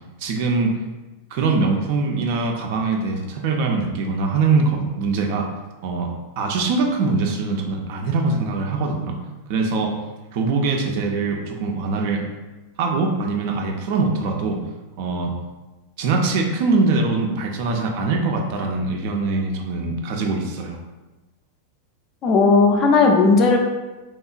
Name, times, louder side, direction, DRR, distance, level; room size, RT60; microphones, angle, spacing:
voice 1, 0.2-0.8 1.3-5.5 5.8-6.1 6.4-9.2 9.5-9.9 10.3-12.2 12.8-14.6 15.0-15.3 16.0-20.8, right 3 dB, 45° right, 2 dB, 0.4 m, -22 dB
voice 2, 22.2-23.6, left 4 dB, 35° left, 2 dB, 0.4 m, -15 dB
2.8 x 2.1 x 2.4 m, 1.1 s
figure-of-eight pair, 90°, 0 cm